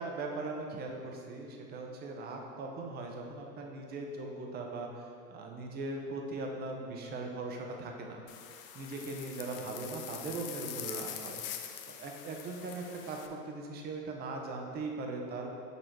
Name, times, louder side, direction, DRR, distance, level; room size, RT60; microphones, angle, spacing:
voice 1, 0.0-8.2 8.7-11.4 11.9-15.5, right 3 dB, 20° right, 1 dB, 0.7 m, -39 dB
sound 1, 8.3-13.3, left 10 dB, 35° left, 0.4 m, -44 dB
6.7 x 4.3 x 4.6 m, 2.4 s
hypercardioid pair, 120°, 48 cm